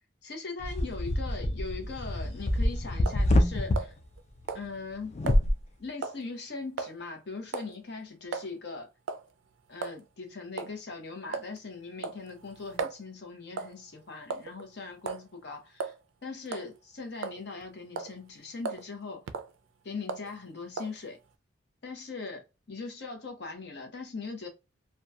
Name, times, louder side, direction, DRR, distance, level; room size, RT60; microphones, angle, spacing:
voice 1, 0.2-4.0 4.5-5.1 5.8-8.9 9.7-15.9 16.2-19.2 19.8-21.2 21.8-24.5, left 4 dB, 55° left, 0.7 m, -40 dB
sound 1, 0.6-3.8 5.1-5.5, left 1 dB, 35° left, 0.4 m, -26 dB
sound 2, 3.1-3.3 3.8-4.2 4.5-4.7 5.3-5.4 6.0-6.2 6.8-7.0 7.5-7.8 8.3-8.5 9.1-9.3 9.8-10.0 10.6-10.8 11.3-11.6 12.0-13.0 13.6-13.8 14.3-14.6 15.1-15.3 15.8-16.0 16.5-16.7 17.2-17.6 18.0-18.2 18.7-18.9 19.3-19.5 20.1-20.3 20.8-21.0, right 5 dB, 80° right, 0.3 m, -36 dB
2.7 x 2.2 x 2.2 m
head